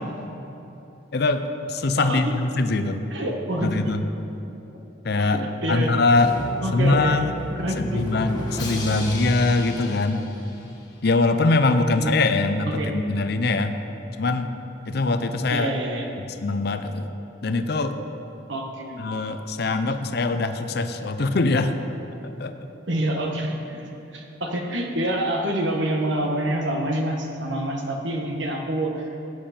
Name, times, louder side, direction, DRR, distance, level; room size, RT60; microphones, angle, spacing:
voice 1, 1.1-3.0 3.6-4.0 5.0-5.4 5.7-6.3 6.7-7.3 7.8-10.2 11.0-13.8 14.2-14.5 14.9-15.7 16.3-17.1 17.4-18.0 19.0-21.7 22.2-22.6, left 3 dB, 55° left, 8 dB, 0.6 m, -22 dB
voice 2, 2.0-2.3 3.1-3.9 5.2-6.0 6.6-7.2 7.6-8.1 11.7-12.2 12.6-13.1 15.5-16.0 18.5-19.1 22.9-29.1, right 1 dB, 70° right, 2 dB, 1.4 m, -27 dB
Drum, 6.2-11.0, equal, 20° left, 1.7 m, -32 dB
15.0 x 9.4 x 4.4 m, 3.0 s
head